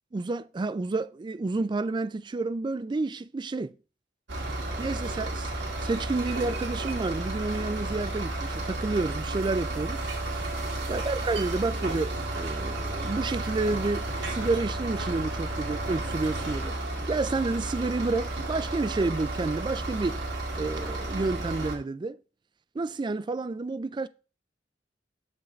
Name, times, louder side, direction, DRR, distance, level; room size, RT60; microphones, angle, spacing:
voice 1, 0.1-3.7 4.8-5.5 5.8-10.0 10.9-16.7 17.1-20.2 20.6-22.2 22.7-24.1, right 3 dB, 25° right, 0.3 m, -30 dB
sound 1, 4.3-21.7, right 2 dB, 80° right, 1.9 m, -32 dB
7.8 x 6.9 x 3.2 m
head